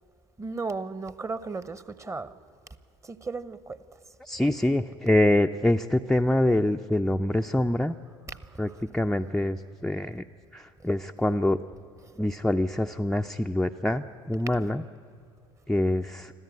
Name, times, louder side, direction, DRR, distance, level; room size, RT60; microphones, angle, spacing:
voice 1, 0.4-2.3 3.0-3.8 8.3-8.8 12.0-12.3, right 4 dB, 20° right, 1.0 m, -36 dB
voice 2, 4.2-8.0 8.6-8.7 8.9-10.2 10.5-11.6 12.2-14.8 15.7-16.3, left 1 dB, 5° left, 0.5 m, -25 dB
25.0 x 14.5 x 9.8 m
figure-of-eight pair, 65°, 15 cm